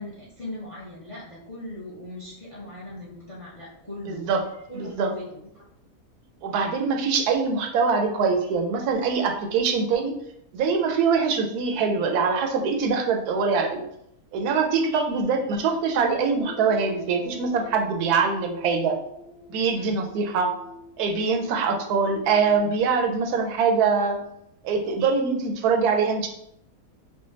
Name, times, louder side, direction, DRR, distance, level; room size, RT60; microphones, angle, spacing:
voice 1, 0.0-4.2 4.7-5.5 19.8-20.0, left 1 dB, 30° left, -6 dB, 0.6 m, -39 dB
voice 2, 4.1-4.4 4.7-5.1 6.4-10.1 10.5-13.8 14.3-19.0 19.5-20.5 21.0-24.2 24.6-26.3, right 5 dB, 85° right, 3 dB, 1.1 m, -23 dB
sound 1, 16.4-22.9, left 1 dB, 85° left, 0.5 m, -43 dB
4.9 x 2.1 x 2.5 m, 0.76 s
omnidirectional pair, 1.6 m